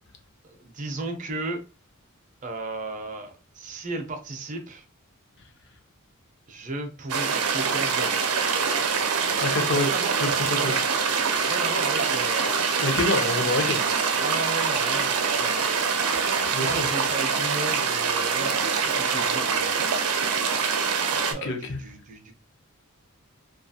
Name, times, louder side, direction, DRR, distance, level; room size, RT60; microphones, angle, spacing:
voice 1, 0.4-1.6 2.4-4.8 6.5-8.2 9.7-10.2 10.7-10.8 11.5-12.6 14.2-15.6 16.6-19.8 21.1-22.3, right 2 dB, 35° right, 0.5 m, -34 dB
sound 1, 7.1-21.3, right 5 dB, 85° right, 0.5 m, -25 dB
voice 2, 9.4-9.9 10.2-10.8 12.8-13.8 16.5-16.9 21.4-21.8, left 2 dB, 55° left, 0.6 m, -27 dB
Water / Water tap faucet, 10.0-17.5, left 2 dB, 85° left, 1.1 m, -43 dB
2.7 x 2.3 x 2.6 m
head